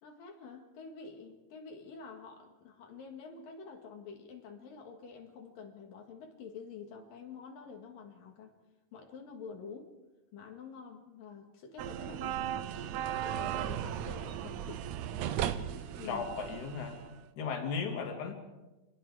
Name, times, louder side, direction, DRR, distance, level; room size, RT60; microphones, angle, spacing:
voice 1, 0.0-8.5 8.9-9.9 10.3-14.9 16.0-16.2, left 5 dB, 90° left, 1 dB, 3.7 m, -48 dB
sound 1, 11.8-17.2, right 10 dB, 70° right, 1.8 m, -36 dB
voice 2, 16.0-17.0 17.4-18.3, left 5 dB, 60° left, 3 dB, 3.8 m, -36 dB
27.5 x 20.5 x 4.9 m, 1.1 s
omnidirectional pair, 3.8 m